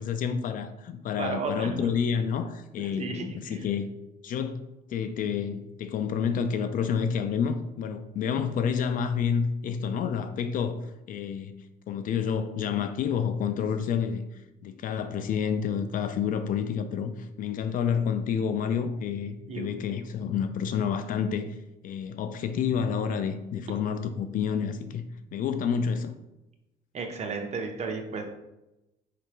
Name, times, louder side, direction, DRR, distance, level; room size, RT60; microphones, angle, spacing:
voice 1, 0.0-3.9 4.2-10.8 11.1-11.5 11.9-14.2 14.6-21.5 21.8-25.0 25.3-26.1, left 7 dB, 55° left, 10 dB, 0.4 m, -29 dB
voice 2, 1.2-1.9 2.8-3.6 19.5-19.7 26.9-28.2, right 4 dB, 40° right, 3 dB, 0.8 m, -33 dB
4.9 x 3.3 x 3.0 m, 0.94 s
cardioid pair, 110°, 17 cm